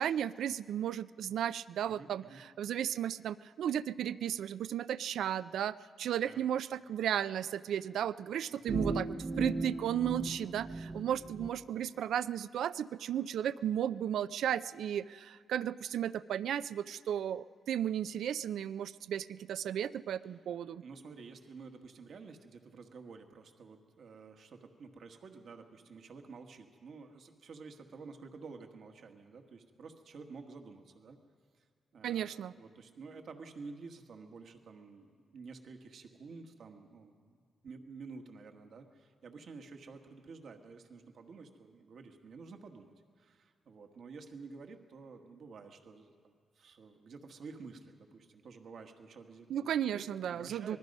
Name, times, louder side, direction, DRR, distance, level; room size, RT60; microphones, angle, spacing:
voice 1, 0.0-20.8 32.0-32.5 49.5-50.8, right 10 dB, 85° right, 15 dB, 0.4 m, -34 dB
voice 2, 1.8-2.4 6.2-6.5 8.5-8.7 20.2-20.4 20.8-31.2 31.5-31.7 31.9-50.8, right 4 dB, 60° right, 5 dB, 1.5 m, -51 dB
sound 1, 8.7-11.5, right 3 dB, 30° right, 0.7 m, -36 dB
25.5 x 20.0 x 5.4 m, 2.1 s
cardioid pair, 125°, 0 cm